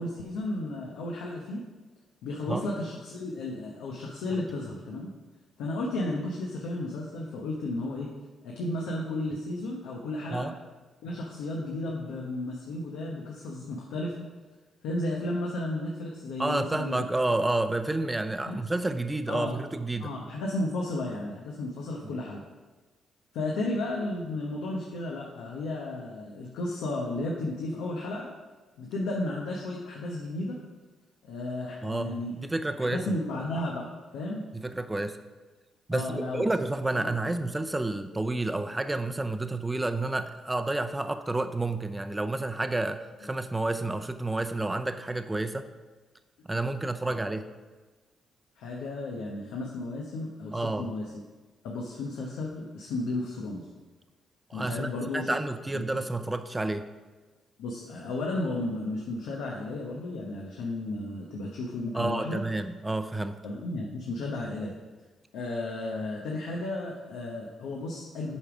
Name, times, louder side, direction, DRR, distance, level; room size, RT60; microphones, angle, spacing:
voice 1, 0.0-1.6 2.2-5.1 5.6-8.1 8.4-10.5 11.0-14.1 14.8-17.1 18.4-18.6 19.3-19.6 20.0-22.4 23.3-28.3 28.8-30.6 31.2-32.3 32.8-33.9 34.1-34.5 35.9-36.5 36.9-37.1 47.1-47.2 48.6-51.1 51.6-53.7 54.5-55.3 55.7-55.8 57.6-62.4 63.4-64.7 65.3-68.4, left 2 dB, 90° left, -2 dB, 1.0 m, -33 dB
voice 2, 16.4-20.1 22.0-22.2 31.8-33.1 34.5-35.2 35.9-45.7 46.5-47.5 50.5-50.9 54.5-56.8 61.9-63.4, right 2 dB, 15° right, 9 dB, 0.6 m, -30 dB
8.3 x 5.3 x 4.9 m, 1.3 s
cardioid pair, 75°, 0 cm